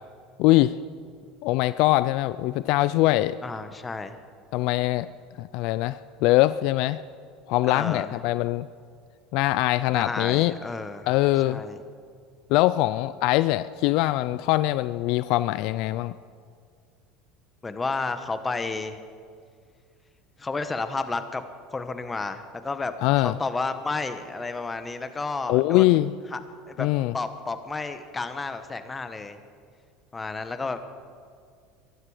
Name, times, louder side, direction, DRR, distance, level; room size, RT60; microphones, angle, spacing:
voice 1, 0.4-0.8 1.4-3.4 4.5-5.1 5.4-7.0 7.5-8.7 9.3-10.5 11.1-11.6 12.5-16.1 23.0-23.3 25.5-26.1 26.8-27.1, left 17 dB, 65° left, 14 dB, 0.4 m, -22 dB
voice 2, 3.4-4.2 7.7-8.2 9.9-11.1 11.5-11.8 17.6-19.0 20.4-21.4 21.7-22.9 23.2-26.0 26.3-26.4 26.7-26.9 27.1-29.4 30.1-30.8, left 3 dB, 20° left, 10 dB, 1.2 m, -31 dB
22.5 x 12.5 x 5.0 m, 2.1 s
supercardioid pair, 110°, 0 cm